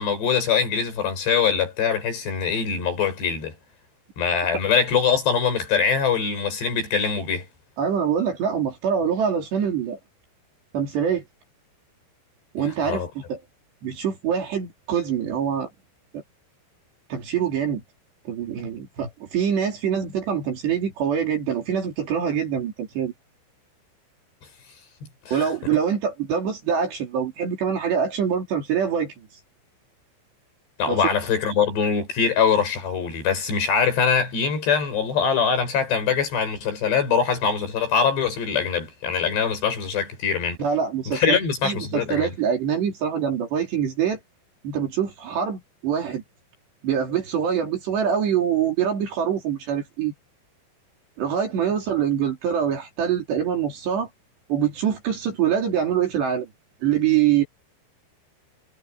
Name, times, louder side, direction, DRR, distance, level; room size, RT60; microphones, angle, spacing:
voice 1, 0.0-3.5 4.2-7.5 12.6-13.1 25.3-25.5 30.8-40.6 41.1-42.3, left 6 dB, 65° left, 8.7 m, -23 dB
voice 2, 7.8-10.0 10.7-11.2 12.5-13.4 13.8-15.7 16.1-16.2 17.1-17.8 18.3-23.1 25.3-29.1 30.9-31.0 40.6-44.2 44.6-46.2 46.8-50.1 51.2-54.1 54.5-56.5 56.8-57.4, right 8 dB, 65° right, 5.6 m, -24 dB
omnidirectional pair, 5.4 m